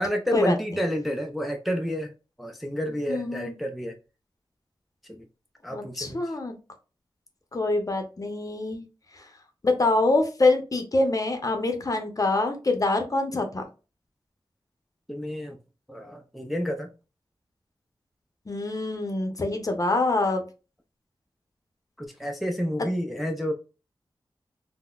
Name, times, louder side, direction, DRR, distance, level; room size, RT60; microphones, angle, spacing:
voice 1, 0.0-2.1 2.4-3.9 5.1-5.2 5.6-6.2 15.1-15.6 15.9-16.9 22.0-23.5, equal, ahead, 0.4 m, -29 dB
voice 2, 3.1-3.5 5.7-6.5 7.5-8.8 9.6-13.6 18.5-20.4, left 2 dB, 40° left, 0.7 m, -25 dB
3.7 x 2.1 x 2.3 m
wide cardioid pair, 75°, 9 cm